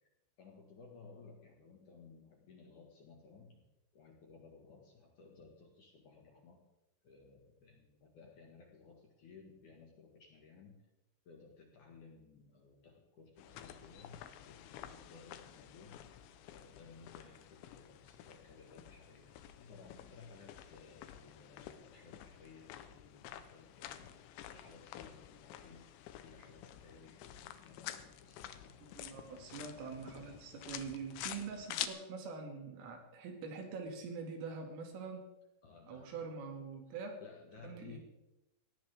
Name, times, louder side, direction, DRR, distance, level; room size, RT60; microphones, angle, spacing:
voice 1, 0.4-3.6 3.9-6.6 7.0-10.8 11.2-16.2 16.5-19.3 19.6-24.2 24.5-28.8 35.6-36.3 37.2-38.0, left 4 dB, 55° left, 0 dB, 2.4 m, -58 dB
sound 1, 13.4-31.9, left 12 dB, 80° left, 3.1 m, -49 dB
voice 2, 28.8-35.3 35.9-37.2 37.6-38.0, right 5 dB, 85° right, 3 dB, 5.0 m, -44 dB
19.0 x 16.0 x 3.6 m, 0.94 s
omnidirectional pair, 5.7 m